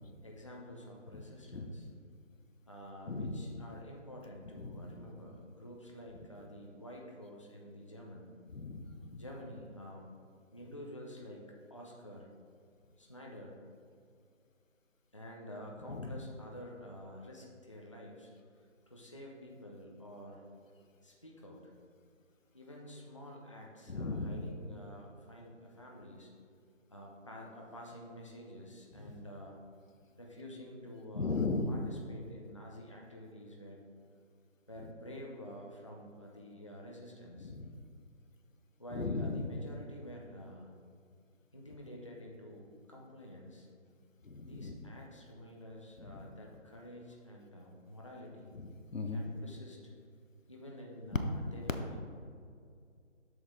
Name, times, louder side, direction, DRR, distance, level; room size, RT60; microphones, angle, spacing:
voice 1, 0.2-1.9 2.7-8.3 9.2-10.1 10.5-12.3 13.0-13.6 15.1-18.3 18.9-20.5 21.0-21.7 22.5-26.3 26.9-29.6 30.2-31.4 31.7-33.8 34.7-37.5 38.8-40.8 41.5-43.7 44.4-48.5 49.1-49.9 50.5-52.0, equal, 25° left, -1 dB, 0.5 m, -49 dB
voice 2, 3.1-3.4 4.6-4.7 8.5-9.2 15.9-16.1 23.9-24.5 31.1-31.8 37.4-37.7 38.9-39.5 44.3-44.7 48.6-49.3, left 3 dB, 90° left, 6 dB, 0.9 m, -36 dB
7.6 x 6.2 x 3.6 m, 2.2 s
figure-of-eight pair, 155°, 38 cm